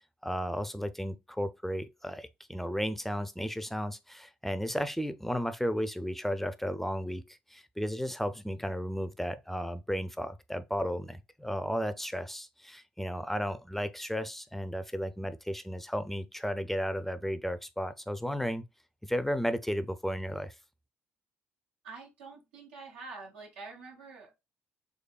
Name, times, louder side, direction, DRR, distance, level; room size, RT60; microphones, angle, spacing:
voice 1, 0.2-18.6 19.0-20.5, equal, 5° left, 0.4 m, -34 dB
voice 2, 21.8-24.4, right 4 dB, 85° right, 0.9 m, -46 dB
3.8 x 3.2 x 2.3 m
hypercardioid pair, 50°, 6 cm